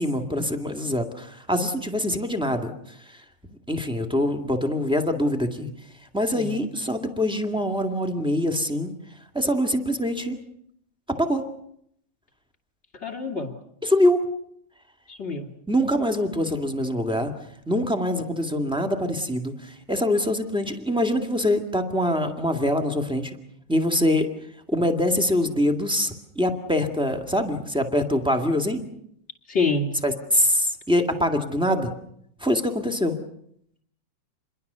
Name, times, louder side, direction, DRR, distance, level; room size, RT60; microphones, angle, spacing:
voice 1, 0.0-3.2 3.7-5.7 6.1-8.9 9.3-10.4 11.2-11.5 13.8-14.2 15.7-17.3 17.7-23.3 23.7-24.3 24.7-28.8 30.0-31.9 32.4-33.2, left 1 dB, ahead, 5 dB, 1.3 m, -24 dB
voice 2, 13.0-13.5 15.1-15.5 29.5-29.9, left 3 dB, 20° left, 5 dB, 2.7 m, -26 dB
27.5 x 22.0 x 6.8 m, 0.72 s
omnidirectional pair, 3.5 m